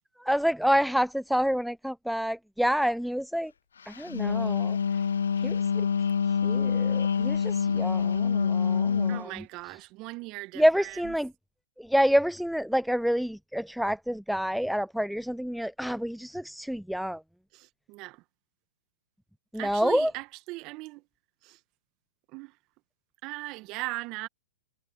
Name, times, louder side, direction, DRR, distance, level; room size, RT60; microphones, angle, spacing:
voice 1, 0.2-3.5 3.9-4.8 5.4-5.9 6.4-9.3 10.6-11.3 11.8-17.2 19.5-20.1, equal, ahead, 0.6 m, -28 dB
Wind instrument woodwind instrument, 3.9-9.3, left 6 dB, 75° left, 0.5 m, -26 dB
voice 2, 9.1-11.1 17.5-18.2 19.5-21.0 21.4-21.6 22.3-22.6 23.2-24.3, right 22 dB, 40° right, 1.9 m, -39 dB
hypercardioid pair, 115°, 0 cm